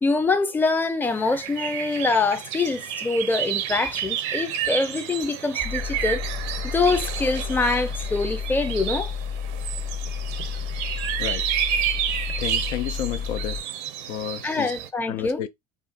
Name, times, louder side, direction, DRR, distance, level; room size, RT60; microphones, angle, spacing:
voice 1, 0.0-6.2 6.7-9.1 14.4-15.5, left 3 dB, 5° left, 0.4 m, -24 dB
sound 1, 1.0-14.9, right 10 dB, 65° right, 0.6 m, -30 dB
sound 2, 5.6-13.6, left 7 dB, 55° left, 1.0 m, -31 dB
voice 2, 12.4-13.6 14.1-14.7 15.1-15.5, left 11 dB, 80° left, 0.5 m, -31 dB
2.5 x 2.4 x 2.6 m
hypercardioid pair, 65°, 36 cm